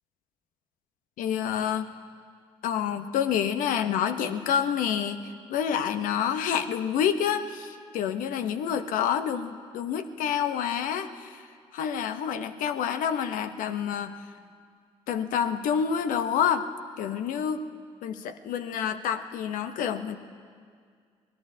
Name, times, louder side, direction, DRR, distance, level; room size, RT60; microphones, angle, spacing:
voice 1, 1.2-1.9 2.6-11.5 11.7-14.1 15.1-16.7 17.0-17.6 18.0-20.2, left 8 dB, 70° left, 8 dB, 0.9 m, -28 dB
25.0 x 19.0 x 2.8 m, 2.1 s
hypercardioid pair, 50°, 14 cm